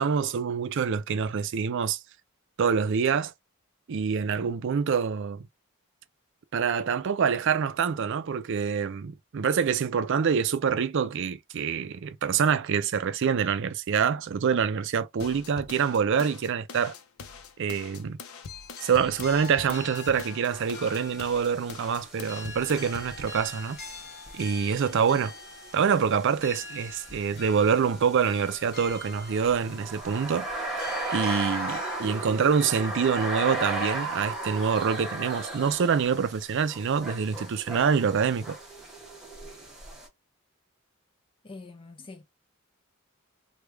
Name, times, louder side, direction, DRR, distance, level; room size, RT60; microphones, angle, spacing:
voice 1, 0.0-2.0 2.6-3.3 3.9-5.5 6.5-16.9 17.6-18.2 18.8-23.8 24.3-25.3 25.7-30.5 30.7-38.6, right 6 dB, 60° right, 0.4 m, -26 dB
sound 1, 15.2-23.2, left 5 dB, 85° left, 0.6 m, -44 dB
sound 2, 18.5-32.0, left 4 dB, 50° left, 0.9 m, -44 dB
sound 3, 20.5-40.1, right 2 dB, ahead, 1.0 m, -37 dB
voice 2, 41.4-42.2, left 3 dB, 25° left, 0.5 m, -44 dB
3.1 x 2.3 x 3.3 m
head